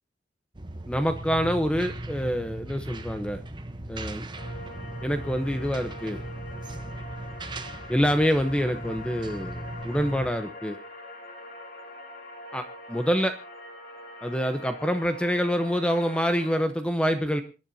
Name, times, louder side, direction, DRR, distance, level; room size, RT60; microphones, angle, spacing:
sound 1, 0.5-10.3, right 1 dB, 25° right, 0.9 m, -38 dB
voice 1, 0.9-3.4 3.9-4.2 5.0-6.2 7.9-10.8 12.5-13.4 14.2-17.4, equal, 5° left, 8 dB, 0.8 m, -26 dB
sound 2, 4.4-16.6, left 1 dB, 60° left, 3.0 m, -43 dB
27.5 x 10.5 x 2.8 m, 0.32 s
head